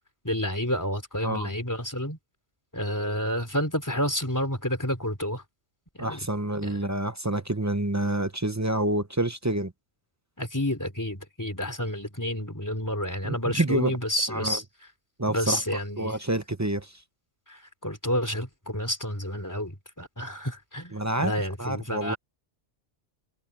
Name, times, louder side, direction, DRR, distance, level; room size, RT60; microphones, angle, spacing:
voice 1, 0.2-2.2 2.7-5.4 6.0-6.2 6.6-6.8 10.4-14.6 15.3-16.2 17.5-22.2, equal, 15° left, 3.3 m, -30 dB
voice 2, 6.0-9.7 13.2-14.0 14.3-14.6 15.2-15.6 16.0-17.0 20.9-21.3 21.6-22.1, right 1 dB, 15° right, 0.6 m, -28 dB
omnidirectional pair, 1.3 m